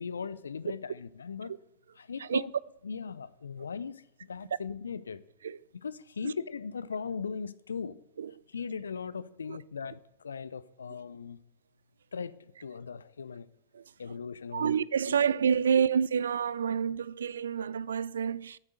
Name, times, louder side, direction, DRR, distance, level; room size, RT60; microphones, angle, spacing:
voice 1, 0.0-1.5 2.0-2.5 2.8-4.0 4.3-5.2 5.8-8.0 8.5-11.4 12.1-13.5 14.0-14.7 15.0-15.1, left 6 dB, 80° left, 0.6 m, -38 dB
voice 2, 14.5-18.6, right 7 dB, 75° right, 0.4 m, -28 dB
9.9 x 8.1 x 7.9 m
figure-of-eight pair, 90°, 0 cm